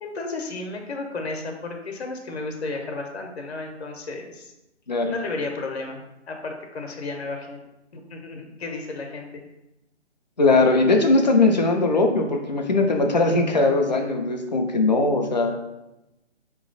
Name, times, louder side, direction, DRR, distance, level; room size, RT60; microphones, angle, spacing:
voice 1, 0.0-4.5 5.1-6.0 6.3-7.6 7.9-9.4, left 3 dB, 60° left, 3 dB, 0.9 m, -33 dB
voice 2, 10.4-15.7, left 3 dB, 40° left, 3 dB, 0.5 m, -20 dB
4.2 x 3.0 x 3.9 m, 0.94 s
hypercardioid pair, 170°, 36 cm